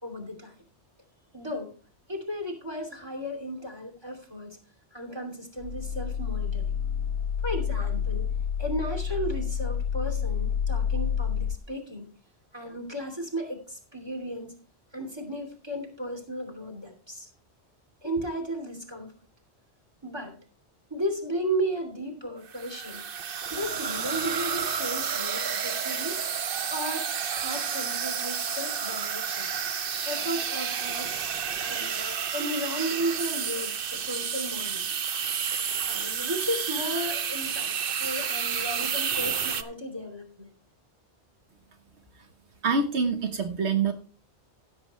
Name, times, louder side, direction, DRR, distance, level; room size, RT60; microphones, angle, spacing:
voice 1, 0.0-0.5 1.3-1.7 2.1-4.6 4.9-6.7 7.4-8.3 8.6-12.1 12.5-14.5 14.9-17.3 18.0-19.1 20.0-20.3 20.9-23.1 23.5-26.2 26.7-27.1 27.4-29.5 30.0-31.1 31.6-34.9 35.8-40.5, equal, 25° right, 3 dB, 2.8 m, -34 dB
sound 1, 5.6-11.6, left 7 dB, 70° left, 0.9 m, -29 dB
sound 2, 22.5-39.6, right 7 dB, 55° right, 0.9 m, -30 dB
voice 2, 42.6-43.9, right 4 dB, 80° right, 6 dB, 1.3 m, -25 dB
16.0 x 7.8 x 3.1 m, 0.38 s
omnidirectional pair, 1.1 m